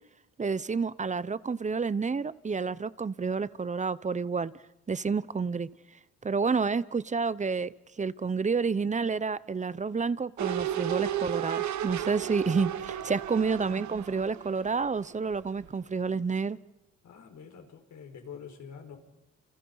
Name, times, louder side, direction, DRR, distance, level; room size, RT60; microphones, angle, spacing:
voice 1, 0.4-4.5 4.9-5.7 6.2-16.6, right 5 dB, 25° right, 18 dB, 0.9 m, -29 dB
sound 1, 10.4-15.3 15.7-15.8, right 11 dB, 70° right, 1.3 m, -33 dB
voice 2, 17.0-19.0, left 7 dB, 70° left, 5 dB, 5.0 m, -46 dB
29.0 x 28.5 x 5.6 m, 0.92 s
cardioid pair, 90°, 30 cm